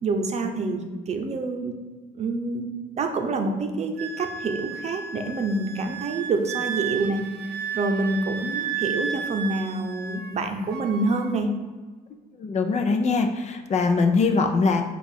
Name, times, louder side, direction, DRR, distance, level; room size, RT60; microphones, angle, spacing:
voice 1, 0.0-1.7 2.2-2.7 3.0-7.2 7.7-11.5, right 3 dB, 40° right, 4 dB, 0.7 m, -27 dB
Wind instrument woodwind instrument, 4.0-10.4 10.7-11.3, right 7 dB, 70° right, 0.7 m, -33 dB
voice 2, 12.4-14.8, left 4 dB, 40° left, 6 dB, 0.6 m, -22 dB
7.0 x 2.5 x 5.4 m, 1.4 s
cardioid pair, 110°, 17 cm